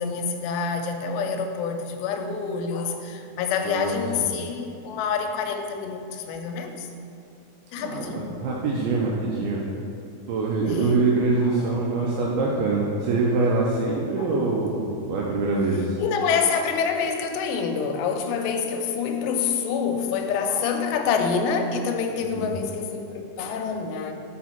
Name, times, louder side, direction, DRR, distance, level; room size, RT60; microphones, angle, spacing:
voice 1, 0.0-6.9 7.7-8.3 10.7-11.0 11.6-11.7 14.2-14.3 16.0-24.1, left 6 dB, 85° left, 4 dB, 2.6 m, -27 dB
voice 2, 3.6-4.4 7.8-9.7 10.3-16.0 22.2-22.5, right 3 dB, 90° right, -3 dB, 2.1 m, -24 dB
6.2 x 4.6 x 4.3 m, 2.5 s
omnidirectional pair, 5.0 m